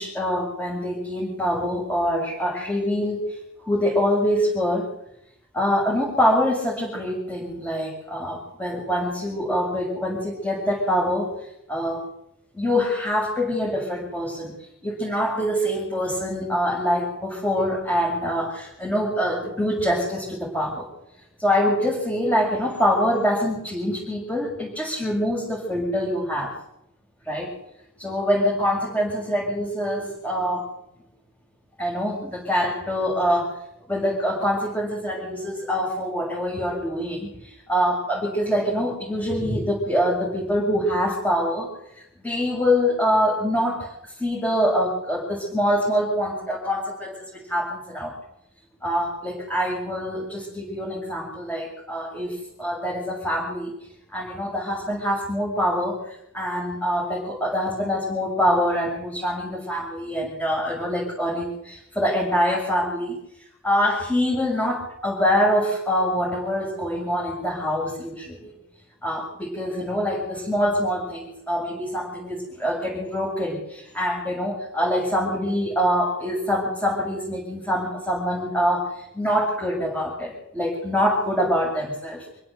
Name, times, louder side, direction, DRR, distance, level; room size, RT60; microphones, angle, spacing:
voice 1, 0.0-3.4 3.6-4.9 5.5-11.3 11.7-12.0 12.5-20.9 21.4-26.5 27.2-27.5 28.0-30.7 31.8-33.6 33.9-48.1 48.8-53.7 54.1-63.2 63.6-68.5 69.0-82.3, equal, 5° left, -3 dB, 7.1 m, -25 dB
26.5 x 16.5 x 8.2 m, 0.79 s
head